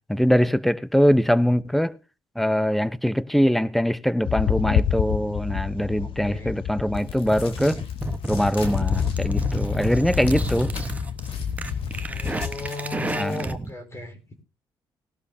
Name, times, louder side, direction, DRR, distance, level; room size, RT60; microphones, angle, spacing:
voice 1, 0.1-2.0 2.4-7.8 8.3-10.7 13.1-13.5, equal, ahead, 0.7 m, -22 dB
sound 1, 4.2-12.7, left 9 dB, 65° left, 0.6 m, -28 dB
voice 2, 6.0-6.5 12.1-14.2, left 3 dB, 30° left, 4.1 m, -35 dB
sound 2, 6.9-13.4, left 5 dB, 85° left, 3.5 m, -45 dB
sound 3, 7.3-13.7, right 2 dB, 15° right, 1.1 m, -31 dB
18.5 x 12.0 x 2.7 m
cardioid pair, 110°, 9 cm